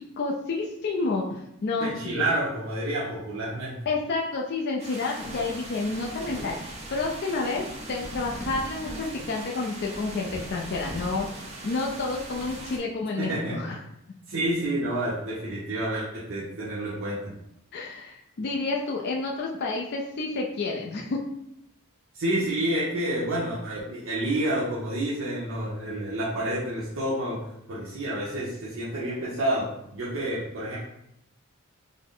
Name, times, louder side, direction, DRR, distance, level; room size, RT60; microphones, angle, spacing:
voice 1, 0.2-2.2 3.9-6.6 6.9-11.4 11.6-13.8 17.7-21.2, left 3 dB, 50° left, -1 dB, 0.4 m, -30 dB
voice 2, 1.8-3.8 13.1-13.6 14.3-17.3 22.1-27.4 27.7-30.8, right 1 dB, 60° right, -7 dB, 0.8 m, -29 dB
sound 1, 4.8-12.8, right 1 dB, 30° right, 0.7 m, -39 dB
3.8 x 2.0 x 3.7 m, 0.79 s
head